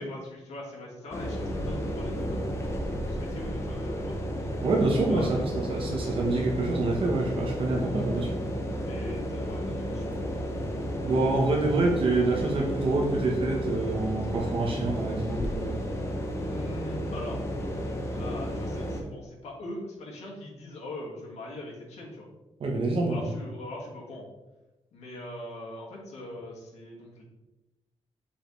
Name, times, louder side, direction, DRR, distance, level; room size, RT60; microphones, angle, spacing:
voice 1, 0.0-2.6 3.1-4.3 5.1-5.5 8.9-10.5 16.5-17.4 18.1-22.3 23.1-24.3 24.9-27.2, left 1 dB, 85° left, -3 dB, 2.2 m, -41 dB
sound 1, 1.1-19.0, equal, 25° left, 0.9 m, -32 dB
voice 2, 4.6-5.4 5.7-8.4 11.0-15.9 22.6-23.3, right 2 dB, 55° right, 0 dB, 1.2 m, -26 dB
6.4 x 5.7 x 3.3 m, 1.0 s
wide cardioid pair, 160°, 11 cm